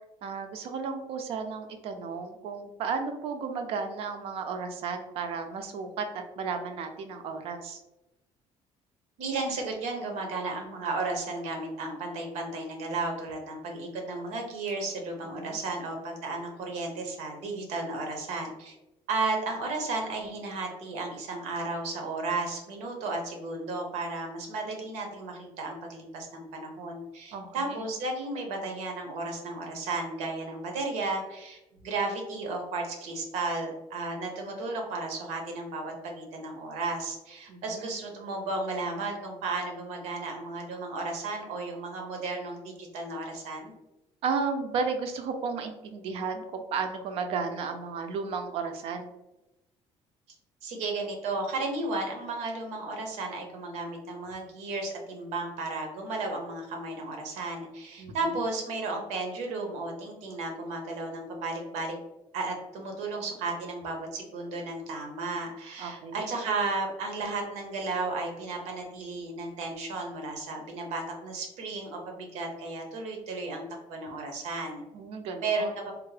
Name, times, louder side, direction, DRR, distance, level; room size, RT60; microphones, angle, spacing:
voice 1, 0.2-7.8 15.3-15.6 27.3-27.8 37.5-37.9 44.2-49.1 58.0-58.1 65.8-66.3 74.9-75.7, right 5 dB, 60° right, 6 dB, 0.5 m, -33 dB
voice 2, 9.2-18.7 19.1-43.7 50.6-62.0 62.3-73.6 73.9-74.8 75.4-75.9, right 3 dB, 85° right, 2 dB, 0.8 m, -34 dB
3.5 x 2.1 x 3.2 m, 0.96 s
cardioid pair, 175°, 11 cm